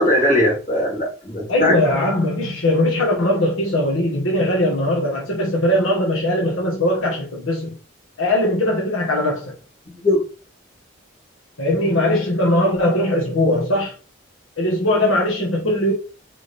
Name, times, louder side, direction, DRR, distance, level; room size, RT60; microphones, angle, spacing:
voice 1, 0.0-1.7 9.9-10.2, left 1 dB, 40° left, 2.5 m, -19 dB
voice 2, 1.5-7.7 8.2-9.5 11.6-13.9 14.6-15.9, left 1 dB, 85° left, 1.3 m, -20 dB
4.2 x 3.6 x 3.3 m
head